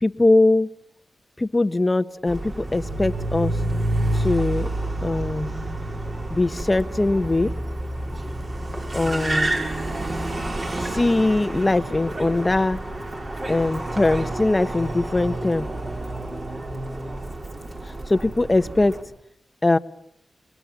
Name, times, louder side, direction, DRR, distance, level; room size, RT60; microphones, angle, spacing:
voice 1, 0.0-0.7 1.4-3.6 4.1-4.7 5.0-5.6 6.3-7.5 8.9-9.5 10.8-12.8 13.5-15.7 17.8-19.0 19.6-19.8, left 2 dB, 30° left, 11 dB, 1.2 m, -21 dB
Car, 2.3-19.0, right 1 dB, 45° right, 6.6 m, -29 dB
29.5 x 21.5 x 7.2 m, 0.72 s
cardioid pair, 60°, 0 cm